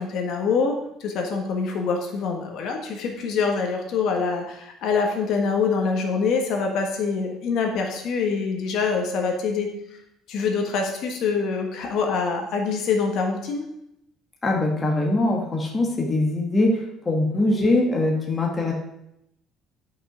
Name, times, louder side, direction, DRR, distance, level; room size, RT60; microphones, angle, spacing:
voice 1, 0.0-9.7 10.3-13.6, left 5 dB, 50° left, 3 dB, 1.3 m, -25 dB
voice 2, 14.4-18.7, left 2 dB, 15° left, -1 dB, 1.3 m, -22 dB
11.0 x 5.5 x 5.0 m, 0.80 s
cardioid pair, 175°, 0 cm